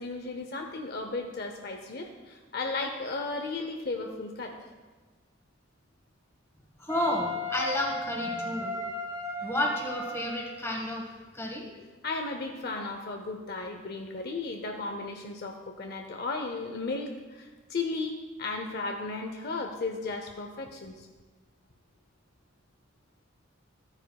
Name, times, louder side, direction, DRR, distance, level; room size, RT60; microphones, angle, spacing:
voice 1, 0.0-4.6 12.0-21.1, left 3 dB, 50° left, 4 dB, 0.6 m, -35 dB
voice 2, 6.8-8.7 9.4-11.7, left 1 dB, 15° left, 0 dB, 1.3 m, -31 dB
Wind instrument woodwind instrument, 6.9-10.7, left 1 dB, 15° right, 1.6 m, -36 dB
13.5 x 9.6 x 2.3 m, 1.3 s
head